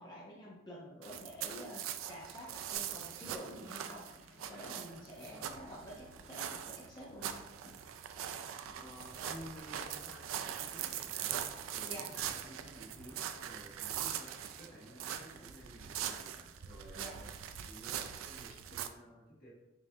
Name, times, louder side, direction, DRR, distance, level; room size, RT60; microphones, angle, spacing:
voice 1, 0.0-4.1 4.4-7.5 11.8-12.1 16.9-17.2, equal, 25° left, -5 dB, 0.6 m, -49 dB
sound 1, 1.0-18.9, right 9 dB, 85° right, 0.3 m, -42 dB
Conversation, 2.7-17.6, left 1 dB, 85° left, 1.1 m, -61 dB
voice 2, 5.1-5.5 8.7-19.5, equal, 50° left, -5 dB, 1.3 m, -54 dB
5.2 x 2.5 x 2.6 m, 0.98 s
head